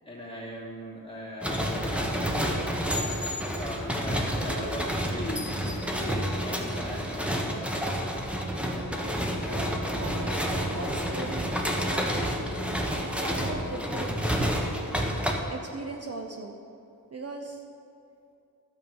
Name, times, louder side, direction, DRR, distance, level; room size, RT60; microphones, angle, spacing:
voice 1, 0.0-3.1 3.4-7.8 8.7-9.8, left 1 dB, 15° left, -5 dB, 2.6 m, -40 dB
sound 1, 1.4-15.3, equal, 5° right, 1.1 m, -29 dB
sound 2, 8.4-16.0, left 1 dB, 75° right, 2.4 m, -43 dB
voice 2, 10.6-11.5 11.8-12.0 13.2-14.2 15.5-16.6 17.1-17.6, right 3 dB, 45° right, 3 dB, 0.7 m, -38 dB
11.5 x 6.9 x 5.4 m, 2.6 s
wide cardioid pair, 80°, 36 cm